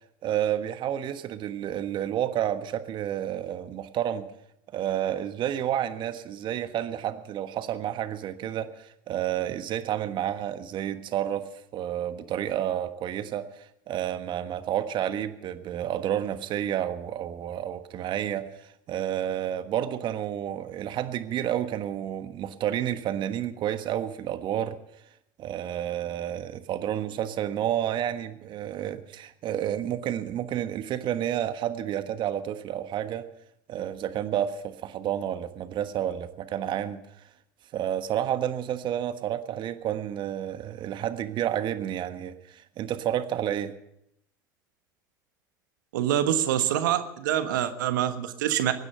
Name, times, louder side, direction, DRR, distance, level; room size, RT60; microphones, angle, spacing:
voice 1, 0.2-4.3 4.7-24.8 25.4-33.3 33.7-37.0 37.7-43.7, right 11 dB, 50° right, 10 dB, 1.4 m, -30 dB
voice 2, 45.9-48.7, right 11 dB, 75° right, 9 dB, 1.4 m, -25 dB
23.5 x 9.7 x 5.6 m, 0.78 s
hypercardioid pair, 70°, 10 cm